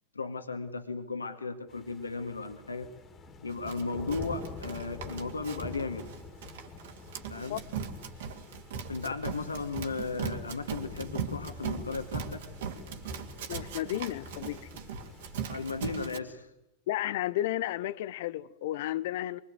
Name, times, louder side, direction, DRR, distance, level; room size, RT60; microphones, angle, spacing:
voice 1, 0.1-2.9 3.4-6.1 7.3-7.6 8.9-12.4 15.5-16.5, left 4 dB, 80° left, 2.1 m, -35 dB
sound 1, 1.7-16.1, left 4 dB, 25° left, 2.8 m, -47 dB
Run, 3.7-16.2, right 6 dB, 55° right, 2.6 m, -39 dB
voice 2, 13.5-14.7 16.9-19.4, left 14 dB, 55° left, 0.9 m, -33 dB
25.0 x 23.0 x 9.4 m
figure-of-eight pair, 90°, 0 cm